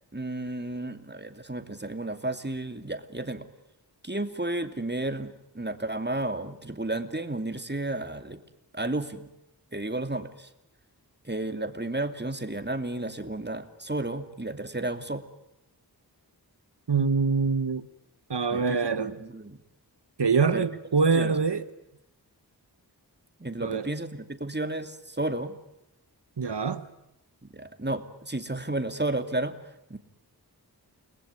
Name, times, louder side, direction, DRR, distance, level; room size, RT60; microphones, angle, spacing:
voice 1, 0.1-3.5 4.0-8.4 8.7-9.3 9.7-10.5 11.2-15.3 18.5-19.6 20.5-20.7 21.1-21.4 23.4-25.6 27.5-29.6 29.9-30.0, right 2 dB, 25° right, 2.6 m, -32 dB
voice 2, 16.9-17.8 18.3-19.1 20.2-21.6 23.6-23.9 26.4-26.8, right 5 dB, 90° right, 1.2 m, -24 dB
30.0 x 20.0 x 9.7 m
wide cardioid pair, 45°, 40 cm